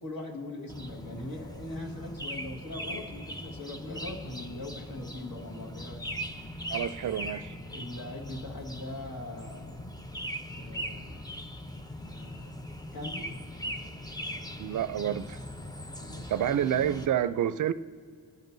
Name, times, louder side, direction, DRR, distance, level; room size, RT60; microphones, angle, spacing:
voice 1, 0.0-6.1 7.6-9.8 10.5-11.3 12.0-13.5 16.0-16.3, left 1 dB, 70° left, 1.8 m, -41 dB
sound 1, 0.7-17.1, equal, 10° left, 0.6 m, -40 dB
voice 2, 6.7-7.6 14.6-15.4 16.3-17.7, right 10 dB, 60° right, 0.4 m, -28 dB
29.5 x 10.5 x 2.6 m
wide cardioid pair, 115°, 36 cm